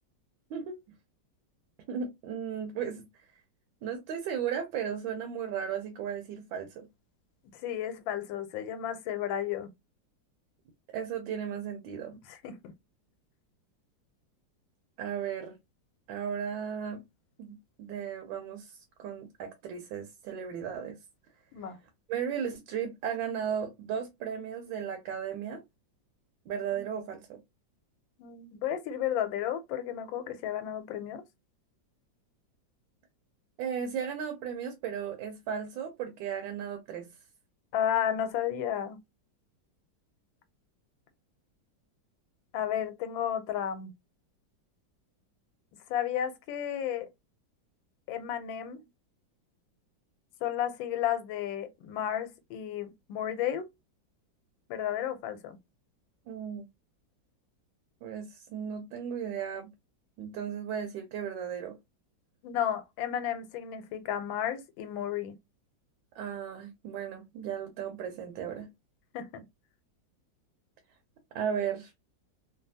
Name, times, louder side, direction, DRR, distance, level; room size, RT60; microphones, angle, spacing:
voice 1, 1.9-3.3 3.8-6.9 10.9-12.2 15.0-15.6 16.1-17.0 17.4-21.0 22.1-25.6 26.5-27.4 33.6-37.1 56.3-56.7 58.0-59.7 60.2-61.8 66.1-68.7 71.3-71.9, right 8 dB, 85° right, 1.4 m, -35 dB
voice 2, 7.6-9.7 12.3-12.6 21.5-21.8 26.7-26.9 28.2-31.2 37.7-39.0 42.5-43.9 45.9-47.1 48.1-48.8 50.4-53.7 54.7-55.6 62.4-65.3 69.1-69.5, left 10 dB, 90° left, 1.3 m, -32 dB
3.2 x 2.3 x 2.6 m
omnidirectional pair, 2.1 m